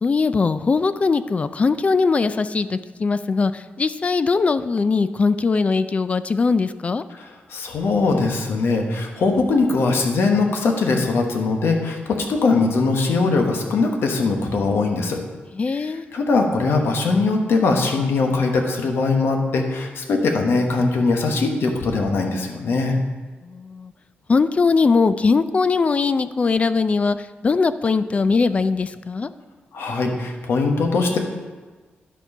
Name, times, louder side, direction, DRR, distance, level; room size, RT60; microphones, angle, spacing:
voice 1, 0.0-7.0 15.5-16.1 23.4-23.9 24.3-27.2 27.4-29.3, left 4 dB, 35° left, 13 dB, 0.4 m, -20 dB
voice 2, 7.2-15.2 15.7-23.0 29.7-31.2, left 3 dB, 80° left, 3 dB, 1.3 m, -21 dB
11.5 x 4.6 x 5.4 m, 1.3 s
wide cardioid pair, 120°, 4 cm